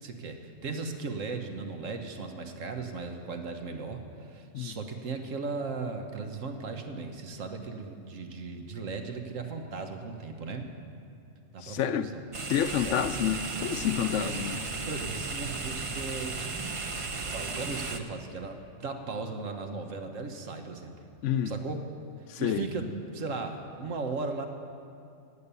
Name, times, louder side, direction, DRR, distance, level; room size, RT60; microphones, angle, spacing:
voice 1, 0.0-10.7 11.5-12.3 12.7-13.1 14.2-14.4 14.9-16.5 17.2-20.9 21.4-21.8 22.4-24.5, right 4 dB, 85° right, 5 dB, 1.5 m, -37 dB
voice 2, 11.6-12.1 12.5-14.6 21.2-21.5 22.4-22.6, left 9 dB, 75° left, 11 dB, 0.9 m, -28 dB
sound 1, 12.3-18.0, right 3 dB, 35° right, 0.6 m, -35 dB
16.5 x 8.7 x 6.9 m, 2.5 s
omnidirectional pair, 1.3 m